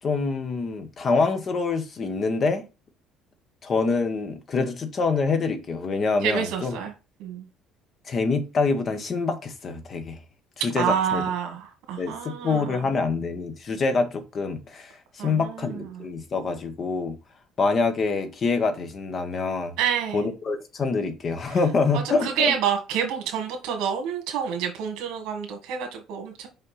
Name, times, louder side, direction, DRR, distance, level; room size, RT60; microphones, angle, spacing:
voice 1, 0.0-2.6 3.6-6.8 8.1-10.2 10.6-11.2 12.0-17.1 17.6-19.7 20.1-22.5, left 4 dB, 30° left, 1.2 m, -26 dB
voice 2, 6.2-6.9 7.2-7.5 10.8-12.8 15.2-16.0 19.8-20.3 21.9-26.5, right 8 dB, 80° right, 2.0 m, -28 dB
5.7 x 5.5 x 5.6 m
cardioid pair, 180°, 0 cm